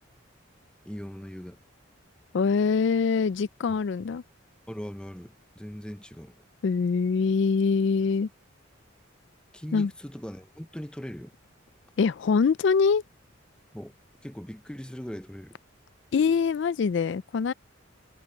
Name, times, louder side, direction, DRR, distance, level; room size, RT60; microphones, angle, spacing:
voice 1, 0.8-1.6 3.7-3.8 4.7-6.4 9.5-11.3 13.7-13.9 14.2-15.6, equal, 5° left, 0.6 m, -40 dB
voice 2, 2.3-4.2 6.6-8.3 9.7-9.9 12.0-13.0 16.1-17.5, left 5 dB, 60° left, 0.3 m, -24 dB
head